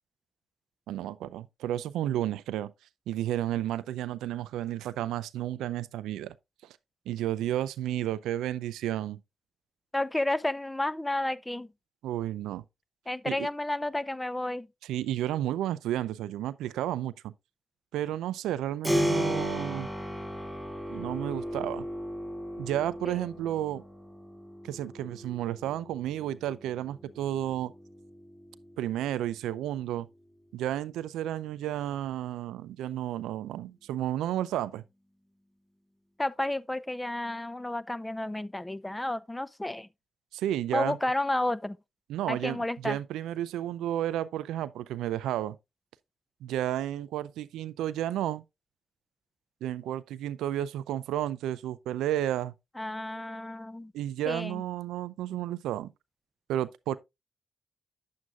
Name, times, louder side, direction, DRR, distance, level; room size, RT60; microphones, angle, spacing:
voice 1, 0.9-2.7 3.1-6.3 7.1-9.2 12.0-12.6 13.3-13.5 14.8-17.3 17.9-19.9 20.9-21.9 22.6-23.8 24.6-27.7 28.8-30.1 30.5-34.8 40.3-41.0 42.1-45.6 46.4-48.4 49.6-52.5 53.9-55.9 56.5-57.0, right 12 dB, 85° right, 0.3 m, -32 dB
voice 2, 9.9-11.7 13.1-14.7 23.0-23.2 36.2-39.9 40.7-41.8 42.3-43.0 52.8-53.9 54.3-54.6, left 1 dB, 15° left, 0.5 m, -31 dB
Keyboard (musical), 18.8-29.5, equal, ahead, 3.0 m, -35 dB
9.5 x 7.5 x 2.4 m
supercardioid pair, 45°, 0 cm